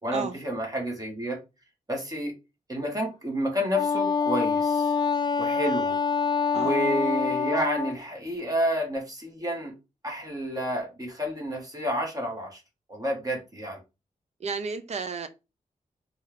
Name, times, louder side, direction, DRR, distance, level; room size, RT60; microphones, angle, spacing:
voice 1, 0.0-1.4 1.9-2.3 2.7-4.9 5.4-6.0 6.5-9.7 10.0-12.6 12.9-13.8, equal, 25° right, 1.4 m, -30 dB
Wind instrument woodwind instrument, 3.7-8.0, left 5 dB, 30° left, 0.4 m, -25 dB
voice 2, 14.4-15.3, right 5 dB, 50° right, 0.5 m, -32 dB
4.3 x 2.4 x 3.3 m
wide cardioid pair, 105°, 14 cm